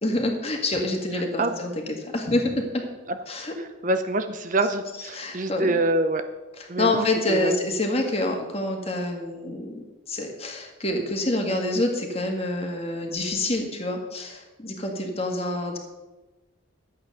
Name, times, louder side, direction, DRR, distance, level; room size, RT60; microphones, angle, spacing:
voice 1, 0.0-2.8 3.3-3.5 5.1-5.8 6.6-9.8 10.1-15.8, left 2 dB, 30° left, 3 dB, 2.0 m, -27 dB
voice 2, 3.6-6.2 6.7-7.5, right 2 dB, 40° right, 8 dB, 0.7 m, -25 dB
12.0 x 8.6 x 6.6 m, 1.1 s
head